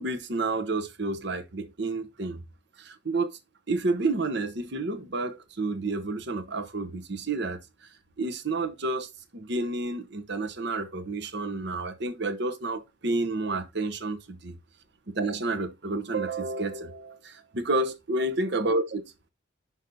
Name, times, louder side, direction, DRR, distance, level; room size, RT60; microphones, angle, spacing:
voice 1, 0.0-2.4 2.8-3.4 3.7-7.6 8.2-14.6 15.1-19.0, right 2 dB, 60° right, 1.0 m, -30 dB
6.2 x 5.4 x 4.1 m
head